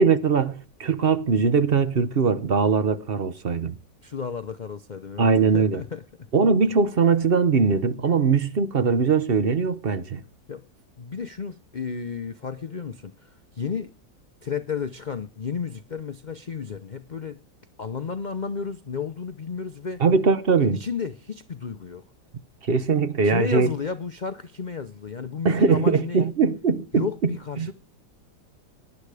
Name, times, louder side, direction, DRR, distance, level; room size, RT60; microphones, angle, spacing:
voice 1, 0.0-3.8 5.2-5.8 6.3-10.2 20.0-20.8 22.6-23.7 25.4-27.0 27.6-27.7, right 5 dB, 45° right, 0.8 m, -21 dB
voice 2, 4.0-6.3 10.5-10.7 11.0-13.9 14.4-17.4 17.8-20.0 20.7-22.0 23.2-26.2 26.9-27.7, left 6 dB, 50° left, 0.5 m, -32 dB
18.5 x 11.0 x 4.9 m
omnidirectional pair, 1.8 m